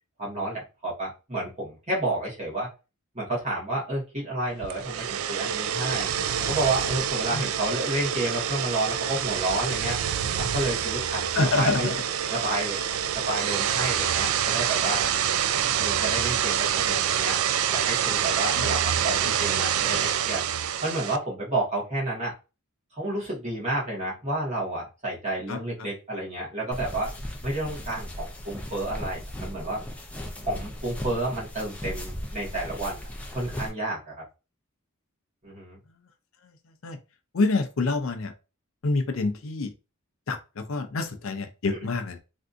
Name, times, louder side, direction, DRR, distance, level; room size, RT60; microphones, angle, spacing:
voice 1, 0.2-2.7 3.1-6.1 6.4-10.0 10.4-11.9 12.3-12.8 13.1-15.0 15.8-17.4 17.7-20.4 20.8-22.3 22.9-27.1 27.4-29.8 30.4-33.0 33.3-34.1 35.4-35.8, right 1 dB, 35° right, 1.5 m, -30 dB
sound 1, 4.6-21.2, right 9 dB, 75° right, 0.3 m, -26 dB
voice 2, 11.3-11.9 18.6-18.7 25.5-25.6 36.8-37.0 37.3-38.3 38.8-39.7 40.3-42.2, left 3 dB, 65° left, 0.5 m, -26 dB
sound 2, 26.7-33.7, equal, 5° left, 0.5 m, -37 dB
3.4 x 2.6 x 2.5 m
head